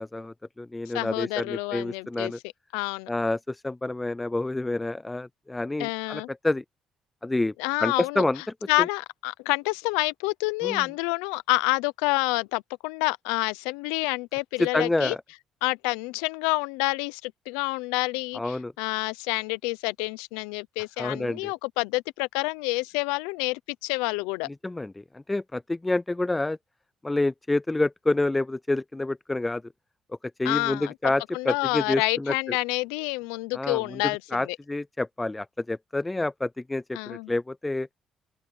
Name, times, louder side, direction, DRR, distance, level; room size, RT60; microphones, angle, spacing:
voice 1, 0.0-2.4 3.1-6.6 7.2-7.5 7.8-8.4 8.8-8.9 10.6-10.8 14.6-15.2 18.3-18.7 21.0-21.5 24.5-26.6 27.0-29.6 30.4-32.3 33.5-37.9, left 2 dB, 15° left, 0.4 m, -28 dB
voice 2, 0.9-2.3 2.7-3.1 5.8-6.3 7.6-8.2 8.7-15.2 15.6-24.5 30.4-34.6 36.9-37.3, left 24 dB, 90° left, 0.7 m, -28 dB
open air
supercardioid pair, 65°, 0 cm